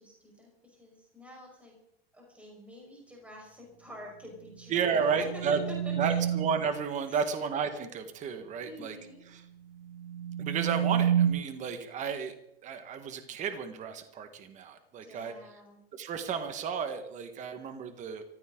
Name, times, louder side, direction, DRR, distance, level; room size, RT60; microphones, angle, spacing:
voice 1, 0.0-1.7 2.1-5.4 5.8-6.3 7.1-7.2 8.6-9.2 15.0-15.8, equal, 5° right, -1 dB, 5.1 m, -48 dB
sound 1, 4.4-6.7 9.7-11.3, right 9 dB, 55° right, 7.6 m, -30 dB
voice 2, 4.7-5.6 6.0-9.0 9.3-9.4 10.4-12.4 12.6-15.3 15.9-18.2, right 6 dB, 25° right, 8 dB, 1.5 m, -32 dB
24.5 x 14.5 x 3.8 m, 0.77 s
supercardioid pair, 150°, 30 cm